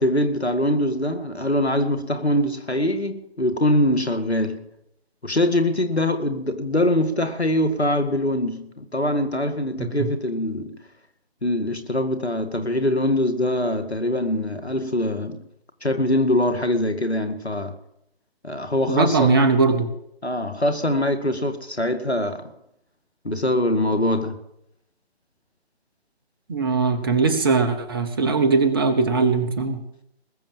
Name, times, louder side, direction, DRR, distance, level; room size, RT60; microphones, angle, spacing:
voice 1, 0.0-4.6 5.2-10.8 11.4-15.4 15.8-17.8 18.4-19.4 20.2-22.5 23.2-24.4, left 1 dB, 90° left, 2.1 m, -23 dB
voice 2, 18.9-19.9 26.5-29.8, right 4 dB, 20° right, 1.0 m, -20 dB
20.5 x 7.3 x 7.3 m
figure-of-eight pair, 145°, 31 cm